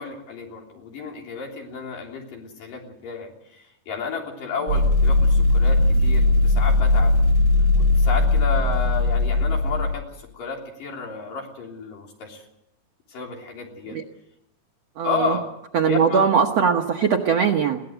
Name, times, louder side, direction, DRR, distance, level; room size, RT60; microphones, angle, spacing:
voice 1, 0.0-7.1 7.8-12.4 13.1-14.0 15.0-15.5 15.8-16.3, left 5 dB, 60° left, 1 dB, 5.0 m, -32 dB
sound 1, 4.7-9.9, left 2 dB, 35° right, 5.1 m, -18 dB
voice 2, 15.0-15.4 15.7-17.8, right 6 dB, 65° right, 4 dB, 1.6 m, -20 dB
22.0 x 17.5 x 8.1 m, 0.81 s
omnidirectional pair, 4.3 m